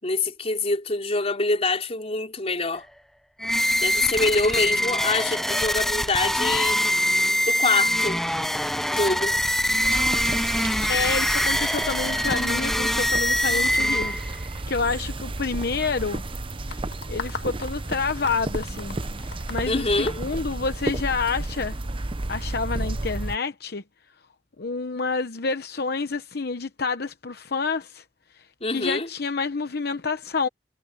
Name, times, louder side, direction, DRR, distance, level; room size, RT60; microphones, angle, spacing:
voice 1, 0.0-2.8 3.8-6.8 7.5-8.2 8.9-9.3 19.7-20.2 28.6-29.1, left 3 dB, 35° left, 4.2 m, -25 dB
sound 1, 3.4-14.4, equal, ahead, 0.5 m, -24 dB
sound 2, 9.8-23.4, right 2 dB, 30° right, 0.8 m, -32 dB
voice 2, 10.9-16.2 16.7-19.0 19.5-21.8 22.3-23.8 24.6-28.0 28.3-30.5, left 4 dB, 65° left, 0.9 m, -28 dB
sound 3, 16.7-21.1, left 4 dB, 80° left, 1.6 m, -38 dB
head